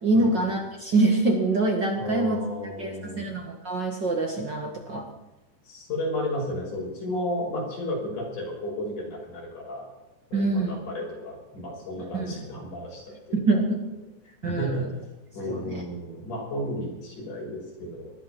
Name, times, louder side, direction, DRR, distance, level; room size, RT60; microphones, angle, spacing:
voice 1, 0.0-2.4 2.8-5.1 10.3-10.8 12.1-12.3 13.3-13.8 14.4-14.8 15.5-15.8, right 2 dB, 40° right, 2 dB, 2.0 m, -25 dB
voice 2, 2.0-3.3 5.7-9.9 10.3-13.6 14.2-14.9 15.3-18.1, left 1 dB, 75° left, -1 dB, 7.3 m, -33 dB
19.5 x 12.5 x 6.0 m, 1.0 s
omnidirectional pair, 3.7 m